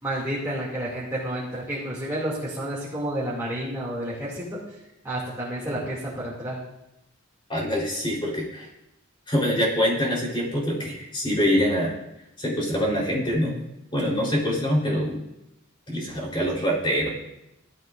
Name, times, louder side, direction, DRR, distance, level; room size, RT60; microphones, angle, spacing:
voice 1, 0.0-4.6 5.0-6.6, right 1 dB, 15° right, -7 dB, 2.5 m, -30 dB
voice 2, 7.5-8.7 9.3-11.9 12.4-13.6 13.9-15.2 15.9-17.1, equal, 25° left, -3 dB, 3.8 m, -24 dB
16.5 x 12.5 x 2.6 m, 0.88 s
head